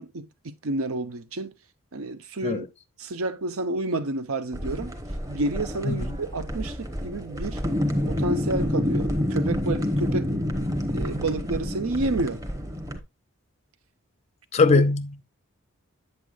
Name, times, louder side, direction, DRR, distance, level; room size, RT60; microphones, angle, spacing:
voice 1, 0.0-1.5 1.9-2.7 3.0-5.0 5.3-7.6 8.1-10.3 10.9-12.4 14.6-14.8, right 2 dB, 75° right, 0.8 m, -30 dB
sound 1, 4.5-13.0, left 1 dB, 15° right, 0.9 m, -28 dB
voice 2, 5.8-6.2 14.5-15.2, left 3 dB, 30° left, 0.4 m, -21 dB
8.3 x 7.9 x 2.4 m
head